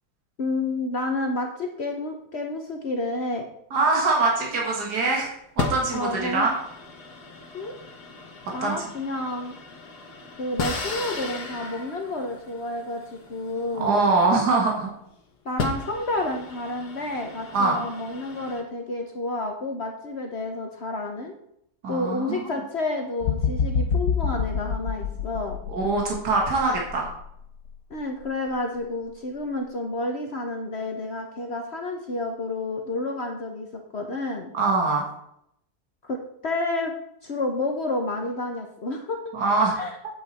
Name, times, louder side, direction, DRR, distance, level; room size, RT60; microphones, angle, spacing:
voice 1, 0.4-3.5 5.9-6.5 7.5-7.7 8.5-9.5 10.4-14.1 15.4-21.3 21.9-25.6 27.9-33.7 33.9-34.5 36.0-36.9 37.2-39.3 39.8-39.9, left 2 dB, 45° left, 2 dB, 1.1 m, -30 dB
voice 2, 3.7-6.5 8.6-8.8 13.8-14.9 17.5-17.8 21.8-22.5 25.7-27.1 34.5-35.1 39.3-39.8, right 3 dB, 85° right, -1 dB, 2.2 m, -23 dB
sound 1, 4.1-4.9 5.6-14.7 15.2-15.3 15.6-18.6, left 4 dB, 85° left, 1.8 m, -36 dB
sound 2, 23.2-27.2 27.7-27.9, left 6 dB, 70° left, 1.1 m, -27 dB
8.7 x 8.2 x 4.2 m, 0.74 s
omnidirectional pair, 1.7 m